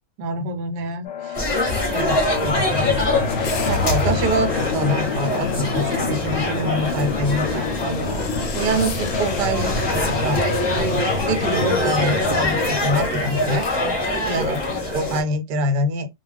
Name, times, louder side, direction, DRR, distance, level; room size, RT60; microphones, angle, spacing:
voice 1, 0.2-1.6 1.9-2.9 3.7-13.7 14.2-14.6 14.9-16.1, right 1 dB, 90° right, 1.2 m, -25 dB
sound 1, 1.0-14.9, left 4 dB, 65° left, 0.7 m, -27 dB
sound 2, 1.3-15.2, left 1 dB, 25° left, 0.6 m, -24 dB
2.4 x 2.4 x 3.2 m
omnidirectional pair, 1.7 m